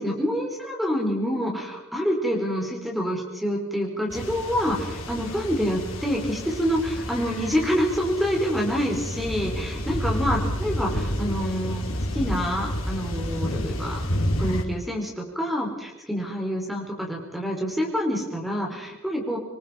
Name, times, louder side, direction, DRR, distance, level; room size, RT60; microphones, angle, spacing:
voice 1, 0.0-11.8 12.1-14.0 14.4-19.4, equal, ahead, 0 dB, 4.7 m, -27 dB
sound 1, 4.1-14.6, equal, 80° left, 4.3 m, -30 dB
26.5 x 22.5 x 5.3 m, 1.0 s
head